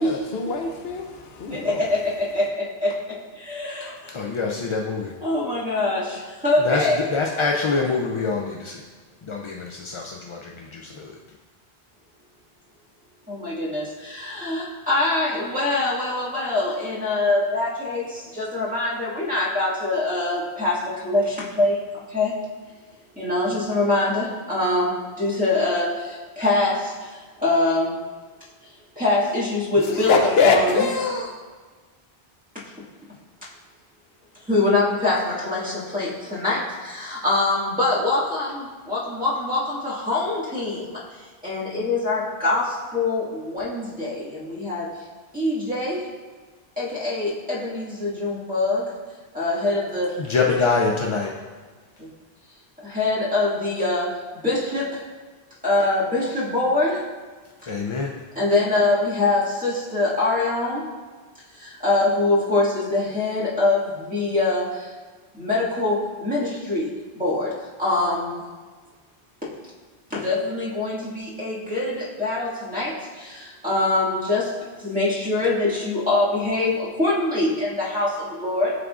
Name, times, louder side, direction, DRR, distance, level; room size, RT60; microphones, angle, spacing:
voice 1, 0.0-1.8 30.1-31.3, left 4 dB, 80° left, 0.9 m, -22 dB
voice 2, 1.5-3.0 3.3-4.1 5.2-7.1 13.3-22.3 23.2-28.0 29.0-31.3 34.5-41.0 41.4-44.9 45.3-46.0 46.8-48.9 49.3-50.2 50.5-50.6 52.0-52.1 52.8-55.0 55.6-57.0 58.4-60.8 61.5-64.9 65.3-66.9 67.1-68.4 70.1-74.5 74.8-78.7, left 2 dB, 10° right, 1.7 m, -24 dB
voice 3, 4.1-5.1 6.6-8.8 9.2-11.2 50.2-51.3 57.7-58.1, left 4 dB, 50° left, 0.3 m, -25 dB
11.0 x 3.7 x 2.4 m
omnidirectional pair, 1.0 m